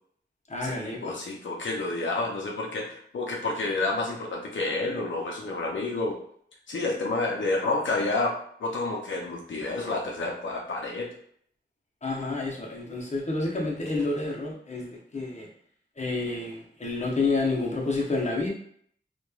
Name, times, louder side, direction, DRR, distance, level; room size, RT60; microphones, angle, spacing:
voice 1, 0.5-1.2 12.0-15.5 16.0-18.5, left 3 dB, 35° left, -2 dB, 0.8 m, -29 dB
voice 2, 1.0-6.2 6.7-8.3 8.6-11.1, left 2 dB, 90° left, -1 dB, 0.5 m, -29 dB
2.9 x 2.2 x 2.3 m, 0.63 s
wide cardioid pair, 55°, 19 cm